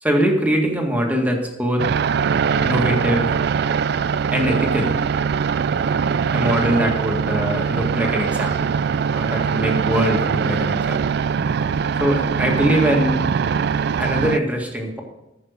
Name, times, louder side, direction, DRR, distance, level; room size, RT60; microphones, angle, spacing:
voice 1, 0.0-1.8 2.6-3.3 4.3-5.0 6.3-8.7 9.1-11.0 12.0-13.2 14.0-15.0, equal, 10° right, 0 dB, 1.9 m, -22 dB
sound 1, 1.8-14.4, right 6 dB, 60° right, 0.4 m, -22 dB
14.0 x 5.8 x 6.6 m, 0.92 s
head